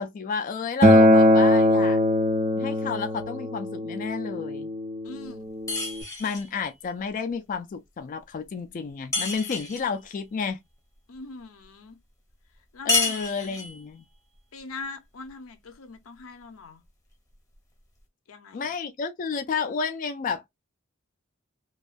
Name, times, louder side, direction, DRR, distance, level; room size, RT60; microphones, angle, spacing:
voice 1, 0.0-2.0 2.6-4.7 6.2-10.6 12.9-14.0 18.5-20.5, left 5 dB, 40° left, 0.3 m, -31 dB
Acoustic guitar, 0.8-6.0, left 1 dB, 35° right, 0.3 m, -21 dB
voice 2, 5.0-5.5 11.1-12.0 12.7-13.6 14.5-16.8 18.3-18.7, left 3 dB, 90° left, 0.6 m, -42 dB
sound 1, 5.7-6.5 9.1-9.9 12.9-13.8, left 3 dB, 15° left, 0.8 m, -28 dB
2.5 x 2.3 x 2.4 m
head